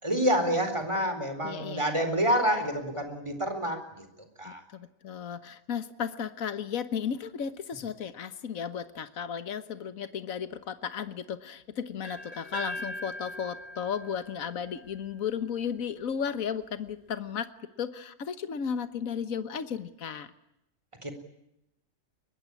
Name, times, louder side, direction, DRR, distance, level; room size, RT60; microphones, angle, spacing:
voice 1, 0.0-4.1 4.4-4.6 21.0-21.1, equal, 20° right, 8 dB, 4.4 m, -28 dB
voice 2, 1.4-1.8 4.4-17.5 17.8-20.3, left 7 dB, 75° left, 12 dB, 1.7 m, -34 dB
sound 1, 12.0-15.9, left 1 dB, 25° left, 7.3 m, -41 dB
24.0 x 21.0 x 9.8 m, 0.84 s
omnidirectional pair, 1.5 m